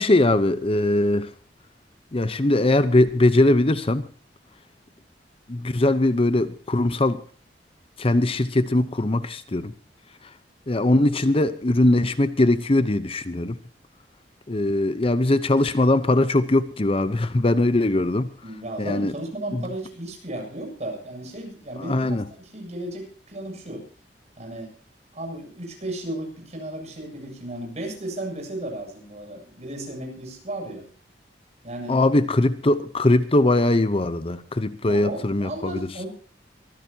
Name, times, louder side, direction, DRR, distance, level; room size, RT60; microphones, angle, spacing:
voice 1, 0.0-1.3 2.1-4.0 5.5-7.2 8.0-9.7 10.2-10.3 10.7-13.6 14.5-18.3 18.8-19.1 19.5-19.7 21.8-22.2 31.9-35.9, left 2 dB, 35° left, 13 dB, 0.8 m, -21 dB
voice 2, 18.4-23.8 24.4-24.7 25.1-30.9 31.6-32.1 34.9-36.1, right 1 dB, 40° right, 2 dB, 7.5 m, -34 dB
24.0 x 15.0 x 2.8 m, 0.40 s
head